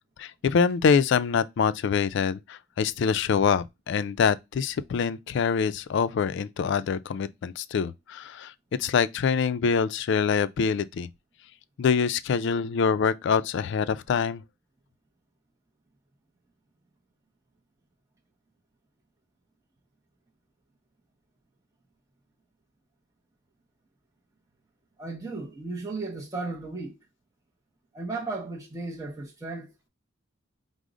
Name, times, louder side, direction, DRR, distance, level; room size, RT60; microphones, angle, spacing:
voice 1, 0.2-8.5 8.8-11.1 11.8-14.4, left 6 dB, 60° left, 0.3 m, -25 dB
voice 2, 25.0-27.0 27.9-29.9, right 3 dB, 15° right, 0.6 m, -35 dB
4.8 x 2.0 x 3.7 m
head